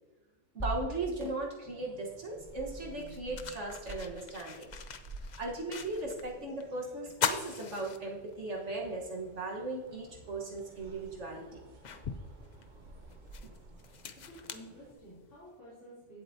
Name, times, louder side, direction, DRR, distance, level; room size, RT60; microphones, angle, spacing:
sound 1, 0.6-2.4, right 1 dB, 25° left, 3.2 m, -40 dB
voice 1, 0.6-4.7 5.4-11.5, right 2 dB, 70° right, -1 dB, 1.7 m, -37 dB
sound 2, 1.6-14.9, right 2 dB, 40° right, 1.0 m, -52 dB
sound 3, 2.3-2.4 2.9-6.3 6.6-6.7 7.1-8.6 9.0-9.1 10.6-10.7 11.2-15.4, left 7 dB, 50° left, 0.5 m, -40 dB
voice 2, 14.3-16.2, equal, 70° left, -11 dB, 3.7 m, -51 dB
16.5 x 7.8 x 2.8 m, 1.2 s
omnidirectional pair, 1.3 m